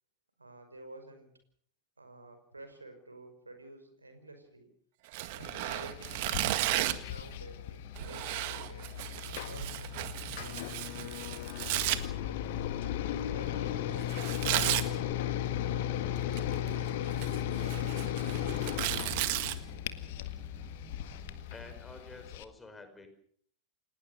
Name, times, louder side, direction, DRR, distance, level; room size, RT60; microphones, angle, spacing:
voice 1, 0.4-1.3 2.0-4.7 5.2-10.6 10.9-11.5 12.2-15.9, right 2 dB, 80° right, 7 dB, 5.5 m, -51 dB
Tearing, 5.1-7.1 7.9-12.0 14.1-14.9 16.2-16.7 17.1-19.5, right 16 dB, 50° right, 1.7 m, -34 dB
sound 1, 5.4-22.4, left 11 dB, 50° left, 1.7 m, -36 dB
sound 2, 15.9-21.8, right 8 dB, 25° right, 1.6 m, -52 dB
voice 2, 21.5-23.1, left 2 dB, 10° left, 7 dB, 5.3 m, -49 dB
29.5 x 18.0 x 6.7 m, 0.62 s
figure-of-eight pair, 90°, 0 cm